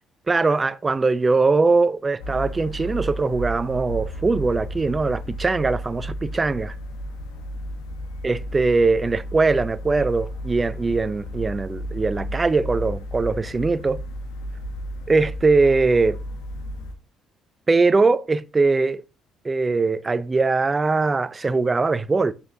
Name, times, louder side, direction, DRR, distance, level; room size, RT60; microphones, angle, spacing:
voice 1, 0.3-6.7 8.2-14.0 15.1-16.2 17.7-19.0 19.4-22.3, right 3 dB, 30° right, 0.5 m, -21 dB
sound 1, 2.2-17.0, equal, 85° left, 1.1 m, -33 dB
8.4 x 6.8 x 2.7 m
hypercardioid pair, 60°, 0 cm